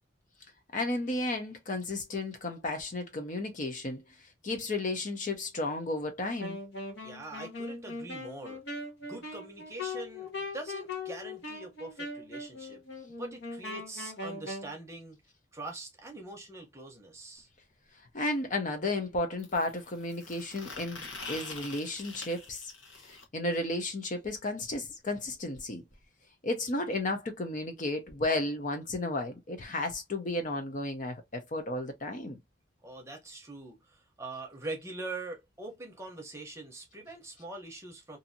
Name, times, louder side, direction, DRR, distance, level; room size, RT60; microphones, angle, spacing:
voice 1, 0.7-4.0 4.4-6.6 18.1-22.7 23.1-25.8 26.4-32.4, left 2 dB, 40° left, 0.6 m, -33 dB
Wind instrument woodwind instrument, 6.4-14.7, left 3 dB, 65° left, 1.2 m, -40 dB
voice 2, 7.0-8.6 9.1-12.8 13.2-15.2 15.5-17.5 32.8-38.2, right 2 dB, 15° right, 0.8 m, -43 dB
sound 1, 17.4-17.5 19.4-23.2 25.1-25.2 25.5-25.6 25.9-26.0 27.0-27.1, left 3 dB, 85° left, 1.0 m, -45 dB
2.6 x 2.6 x 2.6 m
head